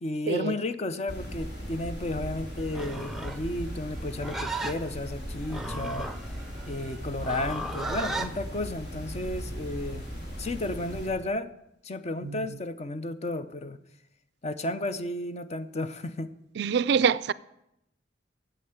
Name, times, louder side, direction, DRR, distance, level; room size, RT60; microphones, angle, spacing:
voice 1, 0.0-6.1 6.7-10.0 10.4-11.5 11.8-13.8 14.4-16.3, left 2 dB, 35° left, 0.6 m, -33 dB
sound 1, 1.1-11.1, equal, 65° left, 3.4 m, -38 dB
Livestock farm animals working animals, 2.6-8.3, right 2 dB, ahead, 0.7 m, -36 dB
voice 2, 16.6-17.3, right 6 dB, 65° right, 0.4 m, -24 dB
9.0 x 7.7 x 8.1 m
head